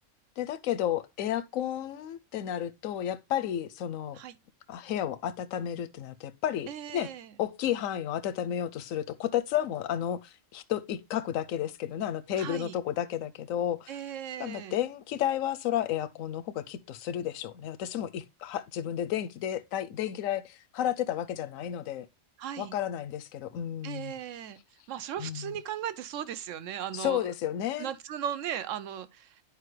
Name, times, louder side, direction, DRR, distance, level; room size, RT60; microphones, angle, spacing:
voice 1, 0.4-4.2 4.7-7.1 7.4-14.0 14.4-22.1 22.6-24.1 25.2-25.5 26.9-27.9, left 11 dB, 90° left, 1.0 m, -32 dB
voice 2, 6.7-7.3 12.4-12.8 13.9-14.8 22.4-22.8 23.8-24.6 24.9-27.3 27.8-29.4, right 9 dB, 75° right, 1.1 m, -37 dB
9.8 x 4.9 x 3.1 m
omnidirectional pair, 1.4 m